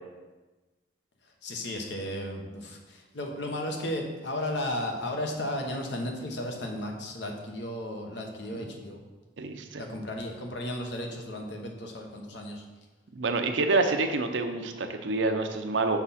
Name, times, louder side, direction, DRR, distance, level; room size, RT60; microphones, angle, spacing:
voice 1, 1.4-9.0 9.8-12.6, left 1 dB, 70° left, 2 dB, 1.1 m, -34 dB
voice 2, 9.4-9.8 13.1-16.0, right 3 dB, 80° right, 6 dB, 0.7 m, -27 dB
6.0 x 5.8 x 4.2 m, 1.2 s
head